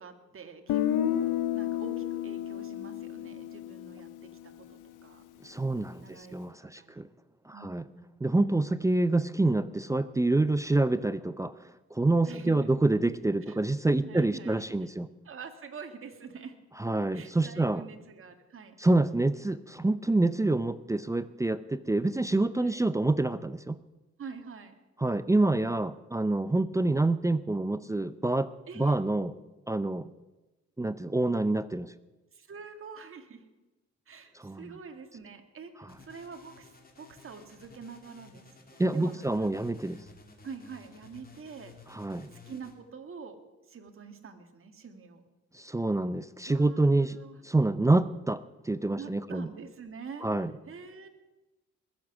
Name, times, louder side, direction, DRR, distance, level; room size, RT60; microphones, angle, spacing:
voice 1, 0.0-5.2 6.0-6.4 6.7-7.0 7.5-8.2 12.3-12.7 13.5-13.6 14.0-14.7 15.3-16.6 17.1-18.8 22.5-22.9 24.2-24.8 28.7-29.0 32.3-33.5 34.1-39.5 40.4-41.7 42.5-43.4 43.7-45.2 46.5-47.4 48.9-50.3 50.7-51.1, right 5 dB, 45° right, 6 dB, 2.0 m, -46 dB
Guitar, 0.7-4.6, left 11 dB, 90° left, 0.8 m, -31 dB
voice 2, 5.4-7.1 7.5-7.8 8.2-15.1 16.8-17.8 18.8-23.8 25.0-28.5 28.8-29.3 29.7-30.1 30.8-31.9 34.4-34.7 38.8-40.0 41.9-42.3 45.5-47.2 47.4-49.5 50.2-50.5, right 2 dB, 10° right, 14 dB, 0.5 m, -27 dB
sound 1, 35.9-42.7, left 3 dB, 30° left, 2.5 m, -54 dB
21.0 x 7.6 x 6.1 m, 1.1 s
cardioid pair, 90°, 30 cm